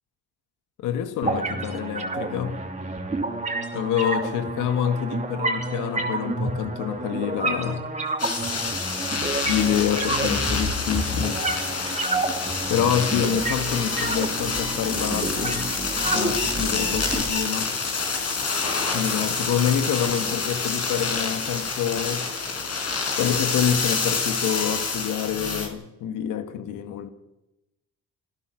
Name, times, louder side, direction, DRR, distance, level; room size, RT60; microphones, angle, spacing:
voice 1, 0.8-2.6 3.7-7.9 9.1-11.4 12.7-15.7 16.1-17.7 18.9-22.3 23.2-27.1, left 9 dB, 90° left, 2.0 m, -27 dB
sound 1, 1.2-17.2, right 2 dB, 25° right, 2.9 m, -29 dB
sound 2, 8.2-25.7, left 4 dB, 55° left, 4.8 m, -27 dB
26.5 x 15.5 x 6.5 m
cardioid pair, 90°, 30 cm